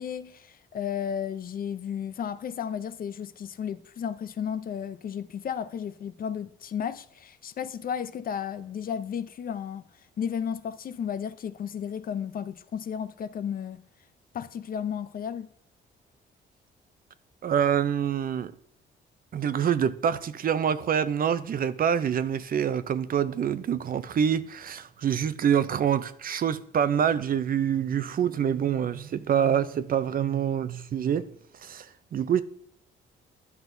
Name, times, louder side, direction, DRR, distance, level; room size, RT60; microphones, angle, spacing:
voice 1, 0.0-9.9 10.2-13.8 14.3-15.5, left 8 dB, 45° left, 0.5 m, -33 dB
voice 2, 17.4-18.5 19.3-31.3 31.6-31.9 32.1-32.4, right 8 dB, 45° right, 0.5 m, -26 dB
11.0 x 6.0 x 2.6 m
cardioid pair, 90°, 20 cm